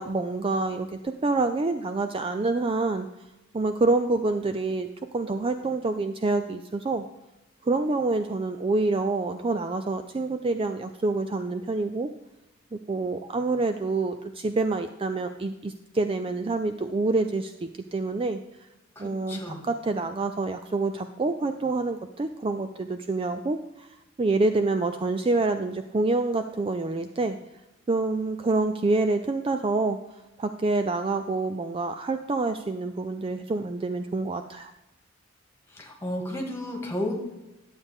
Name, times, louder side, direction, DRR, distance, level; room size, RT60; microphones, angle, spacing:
voice 1, 0.0-3.1 3.5-4.9 5.1-7.0 7.6-12.1 12.9-18.4 19.0-23.9 24.2-27.4 27.9-30.0 30.4-34.7, right 3 dB, 25° right, 8 dB, 0.4 m, -27 dB
voice 2, 19.0-19.6 35.7-37.1, left 1 dB, 15° left, 0 dB, 2.0 m, -33 dB
11.5 x 8.0 x 3.6 m, 0.98 s
head